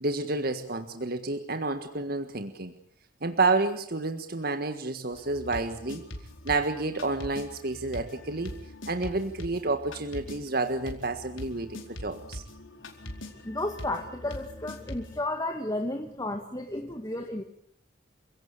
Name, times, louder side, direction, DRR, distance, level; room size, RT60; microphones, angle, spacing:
voice 1, 0.0-2.7 3.2-6.1 6.4-8.5 8.9-12.4, right 3 dB, 50° right, 8 dB, 1.7 m, -30 dB
sound 1, 5.1-15.2, left 1 dB, 85° left, 4.5 m, -43 dB
voice 2, 13.4-17.4, left 1 dB, 20° left, 4 dB, 1.9 m, -33 dB
29.0 x 17.5 x 8.6 m, 0.68 s
head